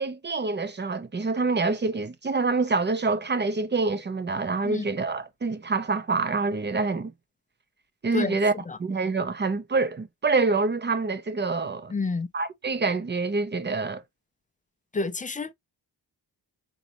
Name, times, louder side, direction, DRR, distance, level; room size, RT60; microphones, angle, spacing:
voice 1, 0.0-7.1 8.0-8.5 8.8-11.9 12.3-14.0, right 3 dB, 25° right, 0.6 m, -26 dB
voice 2, 11.9-12.3 14.9-15.5, left 4 dB, 20° left, 0.4 m, -29 dB
4.0 x 3.9 x 2.9 m
wide cardioid pair, 120°, 42 cm